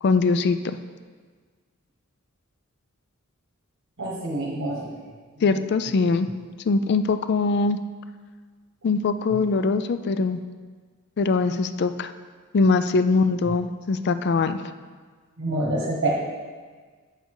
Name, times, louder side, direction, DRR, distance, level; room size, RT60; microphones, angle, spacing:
voice 1, 0.0-0.8 5.4-6.3 6.7-7.8 8.8-10.4 11.2-12.1 12.5-14.6, left 4 dB, 50° left, 11 dB, 0.4 m, -22 dB
voice 2, 4.0-4.9 15.4-16.2, right 1 dB, 55° right, -4 dB, 1.2 m, -26 dB
8.0 x 6.5 x 4.7 m, 1.5 s
head